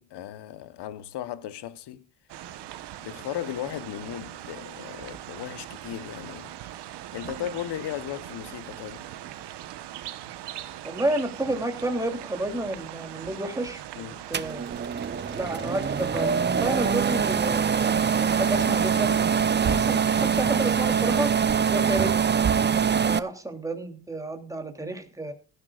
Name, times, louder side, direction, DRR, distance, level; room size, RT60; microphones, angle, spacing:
voice 1, 0.0-2.0 3.0-6.5 7.1-9.2 14.0-14.3, left 11 dB, 70° left, 1.2 m, -36 dB
sound 1, 2.3-20.4, right 12 dB, 75° right, 1.2 m, -41 dB
voice 2, 10.8-13.8 14.3-14.6 15.3-19.3 19.6-21.3 21.7-22.1 22.7-25.3, right 1 dB, 10° right, 3.0 m, -31 dB
sound 2, 14.3-23.2, right 7 dB, 25° right, 0.7 m, -24 dB
sound 3, 19.2-19.3 19.6-19.9 22.0-22.1 22.4-22.6, right 6 dB, 45° right, 1.8 m, -28 dB
18.0 x 13.5 x 2.4 m
supercardioid pair, 70°, 42 cm